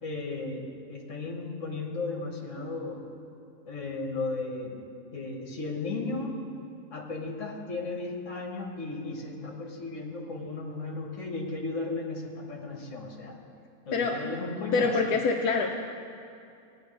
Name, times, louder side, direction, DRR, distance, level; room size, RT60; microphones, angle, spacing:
voice 1, 0.0-3.0 3.7-4.8 5.1-6.4 6.9-13.4 13.8-14.9, left 3 dB, 55° left, 0 dB, 1.8 m, -35 dB
voice 2, 13.9-14.3 14.7-15.7, left 4 dB, 80° left, 2 dB, 1.2 m, -26 dB
18.5 x 9.8 x 3.3 m, 2.6 s
omnidirectional pair, 1.6 m